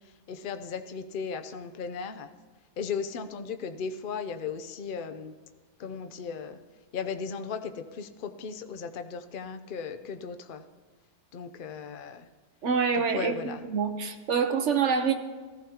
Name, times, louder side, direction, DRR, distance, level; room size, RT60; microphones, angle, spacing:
voice 1, 0.3-2.3 2.8-5.3 5.8-6.6 6.9-10.6 11.3-12.3 12.9-13.6, left 6 dB, 55° left, 7 dB, 0.5 m, -36 dB
voice 2, 12.6-13.3 13.7-15.1, right 6 dB, 55° right, 6 dB, 1.0 m, -26 dB
18.5 x 14.0 x 2.9 m, 1.4 s
omnidirectional pair, 1.7 m